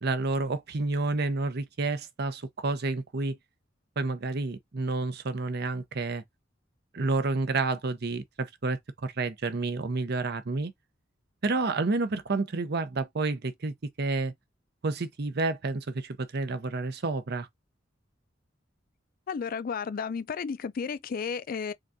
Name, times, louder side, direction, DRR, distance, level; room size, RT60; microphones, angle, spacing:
voice 1, 0.0-3.4 4.0-6.2 6.9-10.7 11.4-14.3 14.8-17.5, right 3 dB, 55° right, 0.7 m, -30 dB
voice 2, 19.3-21.7, left 6 dB, 50° left, 0.4 m, -33 dB
3.7 x 3.7 x 2.6 m
head